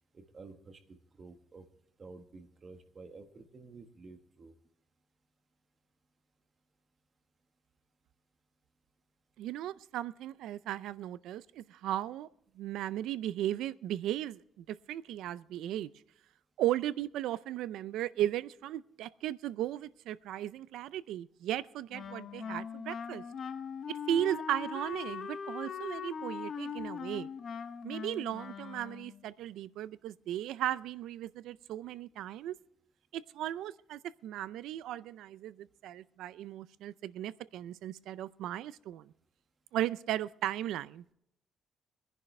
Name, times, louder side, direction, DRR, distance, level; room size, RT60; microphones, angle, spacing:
voice 1, 0.1-1.7 2.0-4.6, right 3 dB, 30° right, 8 dB, 1.3 m, -51 dB
voice 2, 9.4-12.3 12.6-15.9 16.6-23.2 23.9-27.3 27.8-32.5 33.1-39.1 39.7-41.0, right 12 dB, 85° right, 17 dB, 0.4 m, -36 dB
Wind instrument woodwind instrument, 21.9-29.2, left 6 dB, 45° left, 0.8 m, -41 dB
22.0 x 10.5 x 3.3 m, 0.76 s
cardioid pair, 145°, 0 cm